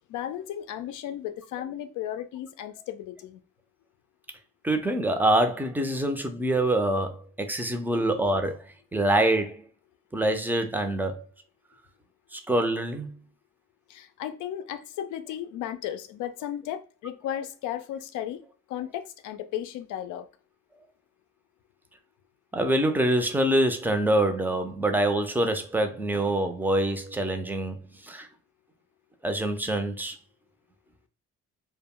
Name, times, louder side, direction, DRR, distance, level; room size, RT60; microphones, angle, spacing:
voice 1, 0.1-3.4 13.9-18.4 18.7-20.3, left 11 dB, 80° left, 0.5 m, -35 dB
voice 2, 4.6-8.6 8.9-9.6 10.1-11.2 12.3-13.1 22.5-27.8 28.1-28.3 29.2-30.1, right 1 dB, 5° right, 0.4 m, -25 dB
2.1 x 2.0 x 3.6 m
cardioid pair, 90°, 30 cm